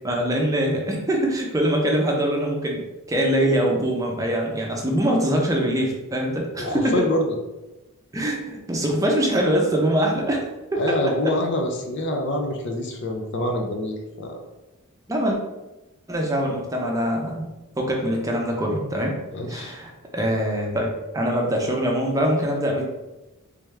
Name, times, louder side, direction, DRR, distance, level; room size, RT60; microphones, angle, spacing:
voice 1, 0.0-2.8 3.1-7.1 8.1-11.3 15.1-15.4 16.1-19.2 19.5-22.8, right 1 dB, 15° right, 0 dB, 0.6 m, -23 dB
voice 2, 6.6-7.4 10.8-14.4 19.3-19.7, left 1 dB, 55° left, 2 dB, 0.5 m, -26 dB
3.4 x 3.3 x 3.3 m, 1.0 s
head